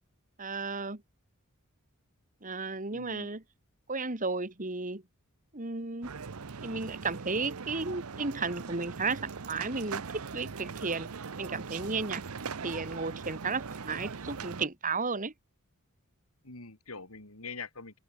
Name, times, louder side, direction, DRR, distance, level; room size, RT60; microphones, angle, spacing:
voice 1, 0.4-1.0 2.4-3.4 3.9-5.0 5.5-6.1 6.6-11.1 11.4-12.2 12.6-15.3, right 4 dB, 35° right, 2.5 m, -34 dB
voice 2, 2.9-3.3 16.4-18.0, left 4 dB, 75° left, 4.3 m, -44 dB
sound 1, 6.0-14.7, right 5 dB, 80° right, 0.8 m, -40 dB
open air
head